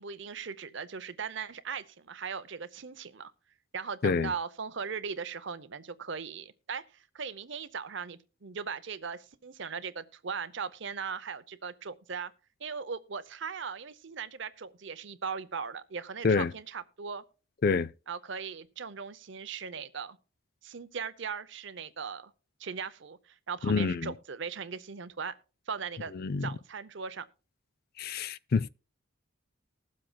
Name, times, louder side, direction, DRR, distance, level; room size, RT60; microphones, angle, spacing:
voice 1, 0.0-3.3 3.7-12.3 12.6-17.2 18.1-20.2 20.6-22.3 22.6-25.4 25.7-26.1 26.4-27.3, right 6 dB, 55° right, 0.7 m, -39 dB
voice 2, 23.6-24.1 26.1-26.5 28.0-28.7, left 4 dB, 45° left, 0.4 m, -27 dB
20.5 x 7.5 x 2.3 m
head